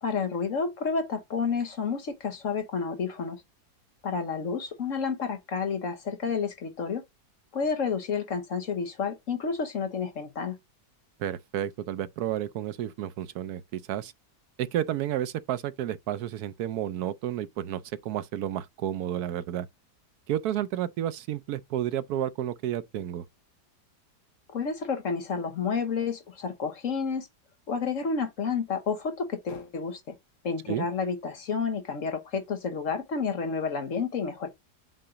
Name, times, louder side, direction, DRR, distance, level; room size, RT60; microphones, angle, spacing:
voice 1, 0.0-3.4 4.0-7.0 7.5-10.6 24.5-27.3 27.7-30.1 30.4-34.5, left 5 dB, 55° left, 1.3 m, -30 dB
voice 2, 11.2-14.1 14.6-19.7 20.3-23.2 30.7-30.9, right 11 dB, 75° right, 1.1 m, -31 dB
7.8 x 2.7 x 5.0 m
omnidirectional pair, 1.7 m